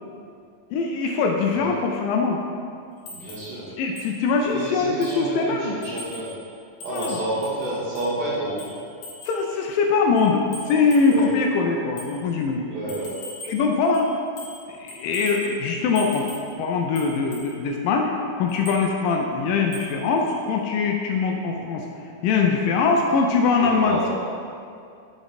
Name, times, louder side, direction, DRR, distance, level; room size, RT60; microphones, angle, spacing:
voice 1, 0.7-2.4 3.8-5.8 6.9-7.2 9.3-12.6 13.4-14.1 14.7-16.3 16.6-21.9 22.2-24.1, left 4 dB, 80° left, 1 dB, 2.1 m, -22 dB
sound 1, 3.1-3.5 4.0-4.1 4.5-4.6 5.0-5.3 5.8-6.3 6.8-8.1 8.6-9.5 10.2-11.3 12.0-12.2 12.9-13.7 13.9-14.6 14.9-15.5 16.0-16.5 17.0-17.5 18.5-18.9 19.7-20.0 20.3-20.4, left 2 dB, 65° left, 1.7 m, -40 dB
voice 2, 3.1-3.7 4.4-6.3 6.8-8.6 11.1-11.3 12.6-13.1 23.6-24.1, right 1 dB, 70° right, -9 dB, 2.8 m, -30 dB
7.2 x 5.1 x 4.1 m, 2.4 s
omnidirectional pair, 4.3 m